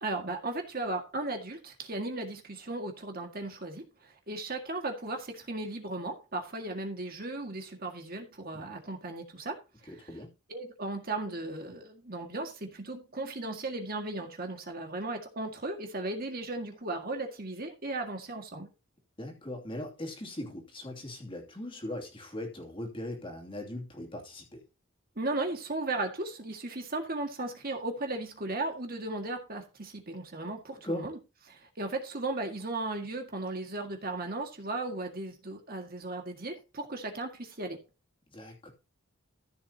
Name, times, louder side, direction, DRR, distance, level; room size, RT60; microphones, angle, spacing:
voice 1, 0.0-9.9 10.5-18.7 25.1-31.2 31.5-37.8, right 2 dB, 45° right, 1.9 m, -36 dB
voice 2, 9.9-10.3 19.2-24.6 30.8-31.0 38.3-38.7, left 1 dB, 25° left, 2.6 m, -39 dB
14.5 x 7.3 x 2.8 m
head